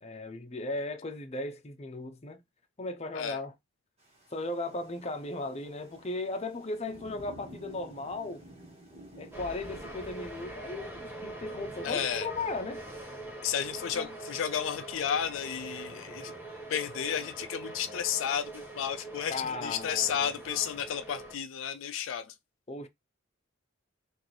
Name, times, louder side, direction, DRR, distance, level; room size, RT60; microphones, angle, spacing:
voice 1, 0.0-2.4 2.8-3.5 4.3-8.4 9.2-12.8 13.9-14.1 19.3-20.3 22.7-22.9, left 2 dB, 35° left, 0.7 m, -36 dB
Thunder / Rain, 4.0-10.5, equal, 35° right, 1.6 m, -52 dB
sound 1, 9.3-21.4, right 2 dB, 10° right, 1.2 m, -43 dB
voice 2, 11.8-12.3 13.4-16.3 16.7-22.3, left 8 dB, 75° left, 0.4 m, -32 dB
6.4 x 2.6 x 3.2 m
head